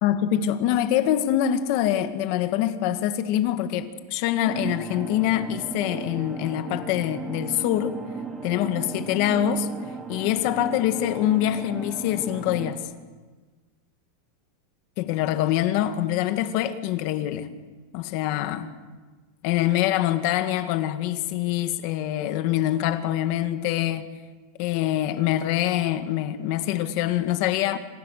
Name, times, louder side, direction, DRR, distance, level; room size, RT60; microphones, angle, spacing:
voice 1, 0.0-8.0 8.4-9.7 10.1-12.8 15.0-17.5 17.9-18.7 19.4-24.1 24.6-27.8, left 12 dB, 45° left, 1.9 m, -25 dB
sound 1, 4.4-12.7, right 4 dB, 10° right, 3.1 m, -36 dB
27.0 x 27.0 x 6.7 m
supercardioid pair, 170°, 0 cm